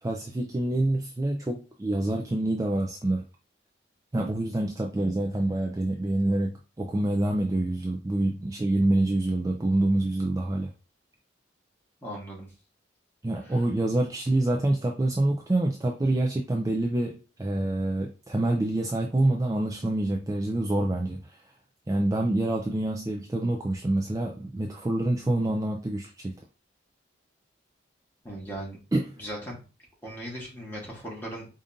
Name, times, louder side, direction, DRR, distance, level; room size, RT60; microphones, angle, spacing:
voice 1, 0.0-3.3 4.1-10.7 13.2-21.4 21.9-26.3 28.9-29.0, right 1 dB, 15° right, 0 dB, 0.3 m, -26 dB
voice 2, 12.0-12.5 13.4-13.6 28.2-28.8 29.2-29.6 30.0-31.5, right 1 dB, 10° left, -3 dB, 1.3 m, -38 dB
5.0 x 2.5 x 2.6 m, 0.34 s
head